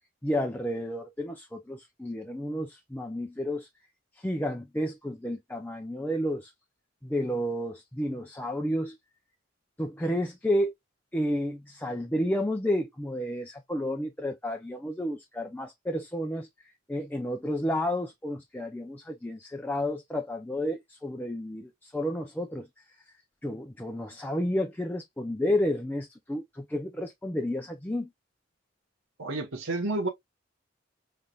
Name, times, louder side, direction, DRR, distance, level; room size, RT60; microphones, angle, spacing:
voice 1, 0.2-3.7 4.1-6.5 7.0-9.0 9.8-10.7 11.1-23.1 23.4-28.1, left 1 dB, 10° left, 0.5 m, -31 dB
voice 2, 29.2-30.1, right 2 dB, 85° right, 1.1 m, -30 dB
5.5 x 3.3 x 2.4 m
head